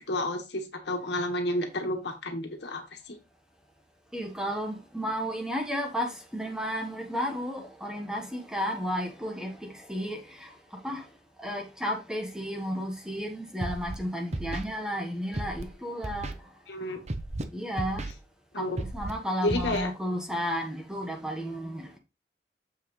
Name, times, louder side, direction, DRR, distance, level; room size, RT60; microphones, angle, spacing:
voice 1, 0.1-3.1 16.7-17.0 18.5-18.8 19.4-19.9, left 1 dB, 70° left, 1.6 m, -31 dB
voice 2, 4.1-11.1 11.4-16.4 17.5-18.1 18.6-22.0, equal, 5° right, 1.3 m, -33 dB
Scratching (performance technique), 13.6-14.0 14.3-14.6 15.3-15.6 16.0-16.3 17.1-17.4 17.8-18.1 18.8-19.1 19.5-19.8, right 2 dB, 40° right, 0.9 m, -33 dB
7.3 x 5.8 x 3.2 m
head